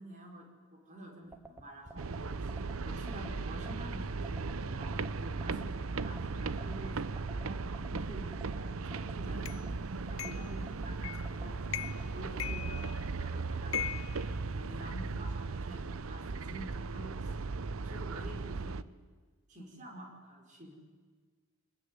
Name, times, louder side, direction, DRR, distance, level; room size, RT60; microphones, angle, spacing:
voice 1, 0.0-7.6 7.9-11.7 12.0-14.2 14.5-17.4 17.8-18.9 19.5-20.7, right 1 dB, 35° right, 3 dB, 4.8 m, -49 dB
sound 1, 1.3-12.3, right 2 dB, 15° right, 1.5 m, -51 dB
sound 2, 2.0-18.8, right 3 dB, 85° right, 0.7 m, -37 dB
sound 3, 9.5-9.6 10.2-10.5 11.0-11.3 11.7-12.1 12.4-13.2 13.7-15.0, left 11 dB, 75° left, 0.8 m, -39 dB
25.5 x 20.0 x 9.8 m, 1.5 s
head